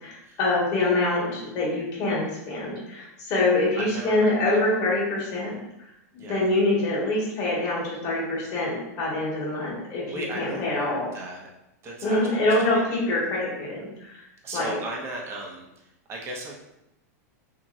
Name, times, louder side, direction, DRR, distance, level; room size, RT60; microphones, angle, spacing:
voice 1, 0.0-11.1 12.0-14.2 14.5-14.8, left 2 dB, 40° left, -5 dB, 1.3 m, -25 dB
voice 2, 3.7-4.6 6.2-6.5 10.1-11.5 11.8-12.9 14.4-16.5, right 2 dB, 30° right, -1 dB, 0.7 m, -37 dB
2.9 x 2.7 x 2.4 m, 0.87 s
hypercardioid pair, 130°, 9 cm